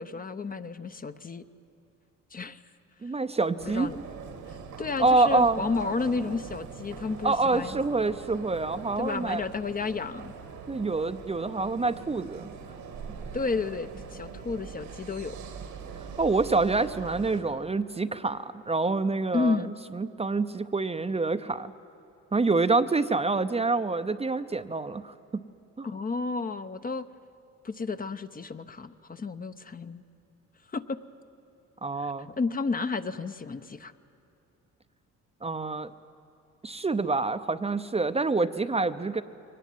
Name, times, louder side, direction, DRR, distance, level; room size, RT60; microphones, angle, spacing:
voice 1, 0.0-1.4 2.3-2.6 3.6-4.0 4.8-7.7 9.0-10.3 13.3-15.4 19.3-19.7 25.8-27.1 27.6-30.0 30.7-31.0 32.0-33.9, left 4 dB, 30° left, 10 dB, 0.8 m, -32 dB
voice 2, 3.0-3.9 5.0-5.6 7.2-9.4 10.7-12.5 16.2-21.7 22.3-25.4 25.8-25.9 31.8-32.3 35.4-35.9 36.6-39.2, right 3 dB, 20° right, 10 dB, 0.7 m, -27 dB
sound 1, 3.6-17.4, right 6 dB, 85° right, 2.6 m, -42 dB
23.0 x 18.5 x 9.3 m, 2.9 s
cardioid pair, 90°, 30 cm